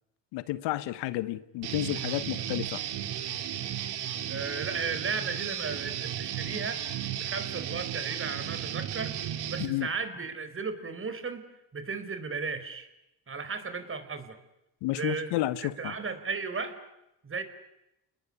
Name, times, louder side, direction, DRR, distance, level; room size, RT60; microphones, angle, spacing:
voice 1, 0.3-2.8 9.6-9.9 14.8-15.9, left 16 dB, 75° left, 1.3 m, -31 dB
Guitar, 1.6-9.7, right 10 dB, 65° right, 3.0 m, -34 dB
voice 2, 4.3-6.8 7.1-9.1 9.4-11.4 11.7-12.9 13.3-14.4 14.9-15.4 15.8-16.8 17.2-17.4, right 4 dB, 30° right, 4.5 m, -35 dB
29.5 x 20.0 x 9.8 m
supercardioid pair, 75°, 42 cm